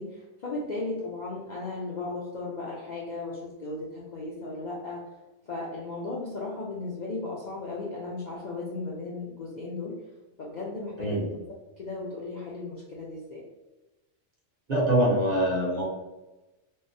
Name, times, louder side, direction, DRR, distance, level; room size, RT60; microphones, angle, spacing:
voice 1, 0.0-5.0 5.5-9.9 10.4-11.2 11.7-13.4, left 3 dB, 55° left, -5 dB, 0.5 m, -36 dB
voice 2, 14.7-15.8, right 1 dB, 40° right, -5 dB, 0.7 m, -24 dB
3.6 x 2.0 x 2.6 m, 1.1 s
omnidirectional pair, 1.2 m